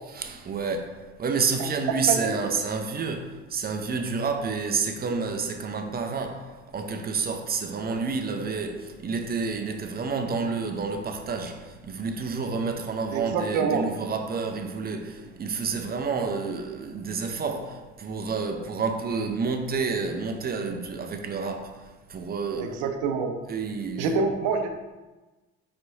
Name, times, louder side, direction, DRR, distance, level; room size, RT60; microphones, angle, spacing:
voice 1, 0.1-22.8 23.5-24.3, right 4 dB, 30° right, 0.7 m, -29 dB
voice 2, 13.1-13.9 22.6-23.4 24.0-24.7, right 5 dB, 65° right, 0.7 m, -26 dB
4.5 x 4.2 x 2.7 m
hypercardioid pair, 65°, 33 cm